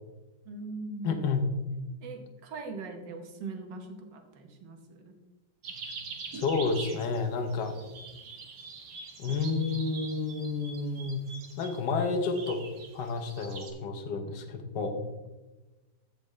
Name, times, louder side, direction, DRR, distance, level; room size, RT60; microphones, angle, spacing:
voice 1, 0.4-1.2 2.0-5.2, right 3 dB, 85° right, 5 dB, 1.8 m, -41 dB
voice 2, 1.0-1.4 6.3-7.8 9.2-11.3 11.6-12.7 12.9-15.0, left 4 dB, 75° left, 5 dB, 1.6 m, -30 dB
sound 1, 5.6-13.7, right 4 dB, 70° right, 1.7 m, -44 dB
15.0 x 5.2 x 3.2 m, 1.1 s
omnidirectional pair, 1.9 m